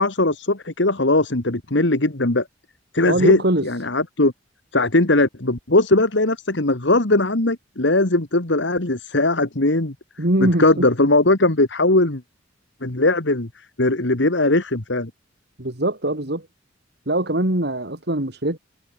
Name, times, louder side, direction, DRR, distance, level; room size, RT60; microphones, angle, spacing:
voice 1, 0.0-2.5 2.9-4.3 4.7-9.9 10.4-12.2 12.8-13.5 13.8-15.1, left 2 dB, 65° left, 2.0 m, -19 dB
voice 2, 3.0-3.6 10.2-10.8 15.6-16.5 17.1-18.6, right 1 dB, 55° right, 3.0 m, -22 dB
head